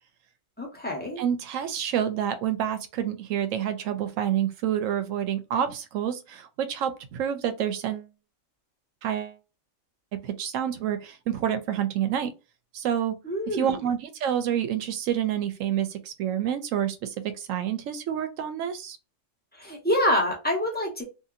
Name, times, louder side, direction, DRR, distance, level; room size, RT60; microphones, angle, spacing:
voice 1, 0.6-1.2 13.2-13.8 19.5-21.0, left 1 dB, 10° left, 0.8 m, -26 dB
voice 2, 1.2-8.1 9.0-9.4 10.2-12.3 12.7-13.2 13.5-19.0, right 9 dB, 85° right, 1.0 m, -28 dB
2.8 x 2.5 x 2.5 m
omnidirectional pair, 1.3 m